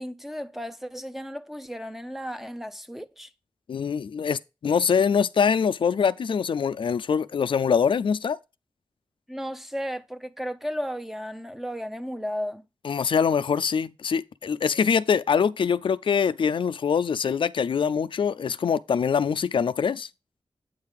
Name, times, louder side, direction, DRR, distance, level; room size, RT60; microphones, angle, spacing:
voice 1, 0.0-3.3 9.3-12.6, equal, 5° right, 0.6 m, -34 dB
voice 2, 3.7-8.4 12.8-20.1, left 6 dB, 70° left, 0.4 m, -24 dB
8.3 x 4.8 x 3.5 m
wide cardioid pair, 75°, 9 cm